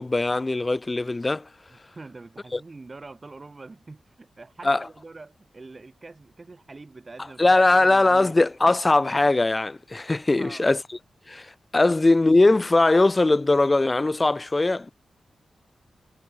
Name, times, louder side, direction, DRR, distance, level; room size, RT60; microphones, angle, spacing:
voice 1, 0.0-1.4 4.6-4.8 7.4-10.8 11.3-11.5 11.7-14.9, left 2 dB, 30° left, 0.8 m, -20 dB
voice 2, 1.7-8.4 8.6-8.8 10.4-10.7 11.8-12.0, right 3 dB, 35° right, 7.0 m, -45 dB
cardioid pair, 65°, 0 cm